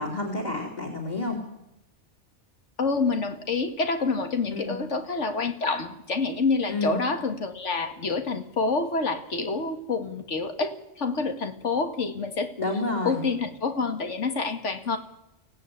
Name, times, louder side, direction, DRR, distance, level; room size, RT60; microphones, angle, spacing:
voice 1, 0.0-1.4 4.5-4.7 6.7-7.0 12.6-13.2, left 2 dB, 35° left, 2 dB, 3.4 m, -29 dB
voice 2, 2.8-12.5 13.0-15.0, left 4 dB, 80° left, 7 dB, 2.1 m, -27 dB
23.5 x 17.0 x 9.3 m, 0.89 s
omnidirectional pair, 1.2 m